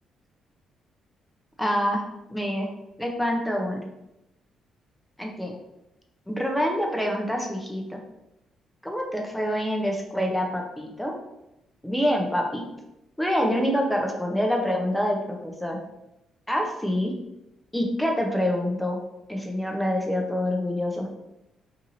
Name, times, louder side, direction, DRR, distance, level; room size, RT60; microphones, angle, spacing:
voice 1, 1.6-2.0 2.3-2.7 3.0-3.8 5.2-5.6 6.3-8.0 8.8-11.2 11.8-12.6 13.2-15.8 16.5-17.1 17.7-19.0 19.3-21.1, equal, 5° left, 1 dB, 0.5 m, -26 dB
2.6 x 2.6 x 2.8 m, 0.90 s
cardioid pair, 90°, 0 cm